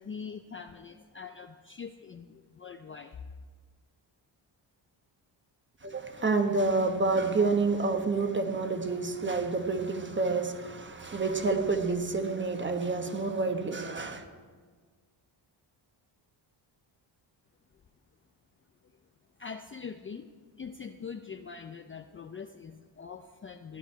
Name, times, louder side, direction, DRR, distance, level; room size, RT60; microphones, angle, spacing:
voice 1, 0.0-3.2 19.4-20.3 20.6-23.8, left 6 dB, 30° left, 0.4 m, -43 dB
voice 2, 5.8-14.2, right 3 dB, 25° right, 1.2 m, -28 dB
15.0 x 10.0 x 4.6 m
cardioid pair, 125°, 46 cm